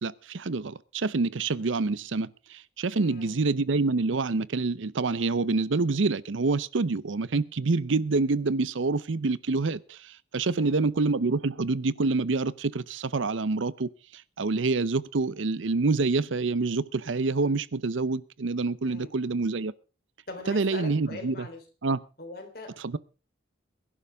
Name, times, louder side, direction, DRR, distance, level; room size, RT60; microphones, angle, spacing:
voice 1, 0.0-19.7 20.5-21.5 21.8-22.0 22.8-23.0, right 3 dB, 85° right, 0.7 m, -27 dB
voice 2, 2.9-3.4 10.5-10.8 18.9-19.1 20.3-21.6 22.2-23.0, left 2 dB, 50° left, 3.7 m, -42 dB
22.0 x 11.0 x 3.5 m
head